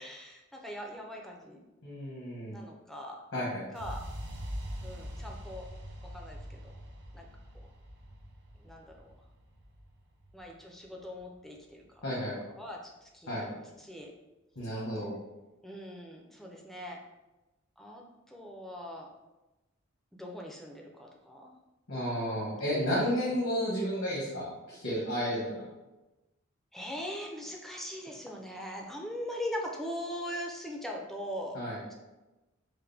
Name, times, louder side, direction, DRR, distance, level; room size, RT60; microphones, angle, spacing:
voice 1, 0.0-1.6 2.5-3.2 3.7-4.0 4.8-5.7 6.1-6.7 7.1-7.3 8.6-9.0 10.3-11.8 12.5-14.1 15.6-17.0 17.8-19.1 20.2-21.5 22.3-23.0 26.7-31.6, equal, ahead, 0 dB, 0.5 m, -41 dB
voice 2, 1.8-2.6 3.3-3.6 12.0-12.4 13.3-13.5 14.5-15.1 21.9-25.6 31.5-31.8, equal, 80° left, -8 dB, 1.3 m, -32 dB
sound 1, 3.8-11.7, equal, 60° right, 0.7 m, -43 dB
4.7 x 2.1 x 3.3 m, 1.0 s
head